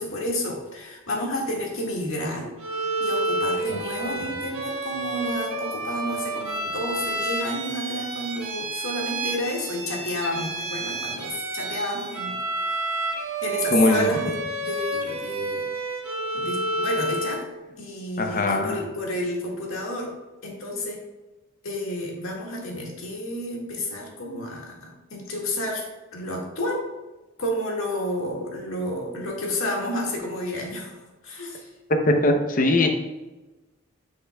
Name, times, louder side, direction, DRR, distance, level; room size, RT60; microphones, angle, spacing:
voice 1, 0.0-2.5 3.0-15.6 16.3-17.4 17.8-20.1 20.4-21.0 21.6-25.9 26.1-26.8 27.4-31.7, left 1 dB, 80° left, -1 dB, 1.9 m, -31 dB
Bowed string instrument, 2.6-17.5, right 2 dB, 90° right, 1.3 m, -30 dB
voice 2, 13.7-14.1 18.2-18.8 32.0-32.9, left 2 dB, 40° left, 4 dB, 0.7 m, -21 dB
9.9 x 5.7 x 2.3 m, 1.1 s
head